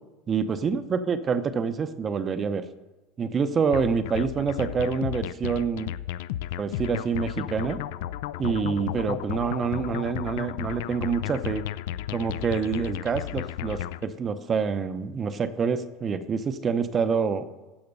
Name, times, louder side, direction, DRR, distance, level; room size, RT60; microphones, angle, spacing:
voice 1, 0.3-2.6 3.2-5.9 6.6-7.8 8.4-11.6 12.1-17.5, right 5 dB, 25° right, 12 dB, 0.6 m, -27 dB
sound 1, 3.7-14.0, left 12 dB, 75° left, 0.4 m, -33 dB
15.5 x 5.8 x 5.3 m, 1.1 s
supercardioid pair, 155°, 0 cm